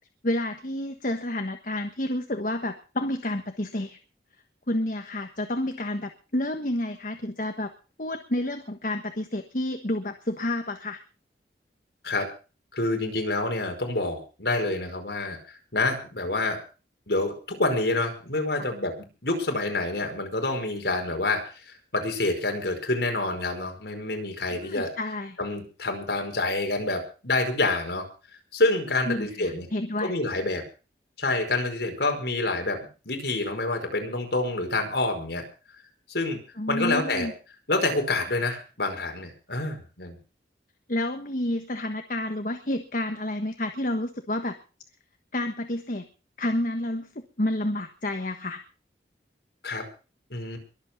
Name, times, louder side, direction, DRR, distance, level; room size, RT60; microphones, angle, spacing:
voice 1, 0.2-4.0 4.7-7.7 8.0-11.0 18.6-18.7 24.5-25.4 29.0-30.1 36.6-37.3 40.9-44.6 45.3-46.0 46.4-48.6, left 1 dB, 50° left, 6 dB, 1.4 m, -30 dB
voice 2, 12.7-15.4 15.7-16.6 17.1-18.9 19.2-24.9 25.4-28.1 28.5-29.7 30.0-30.6 31.2-32.8 33.0-35.5 36.1-36.4 36.7-37.3 37.7-40.2 49.6-49.8 50.3-50.6, left 2 dB, 65° left, 4 dB, 5.1 m, -27 dB
22.5 x 8.3 x 6.1 m, 0.36 s
head